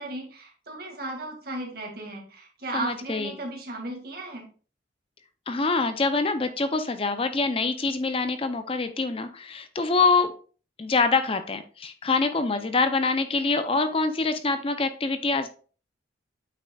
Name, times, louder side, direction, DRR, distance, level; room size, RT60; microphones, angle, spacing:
voice 1, 0.0-4.5, right 1 dB, 55° right, 0 dB, 2.1 m, -35 dB
voice 2, 2.7-3.3 5.5-10.3 10.8-15.5, left 3 dB, 30° left, 9 dB, 0.5 m, -25 dB
8.5 x 5.8 x 2.3 m, 0.38 s
head